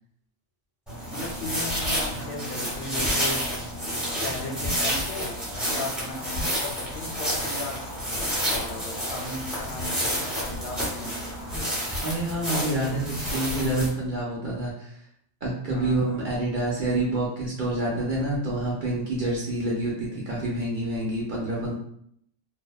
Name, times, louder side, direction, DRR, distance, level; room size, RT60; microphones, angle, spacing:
sound 1, 0.9-13.9, equal, ahead, 0.8 m, -29 dB
voice 1, 1.1-3.4 4.2-7.8 8.4-11.2 15.7-16.1, left 2 dB, 65° left, -1 dB, 0.8 m, -36 dB
voice 2, 12.0-14.9 15.4-21.7, right 1 dB, 55° right, -4 dB, 0.6 m, -27 dB
2.6 x 2.1 x 2.3 m, 0.70 s
omnidirectional pair, 1.2 m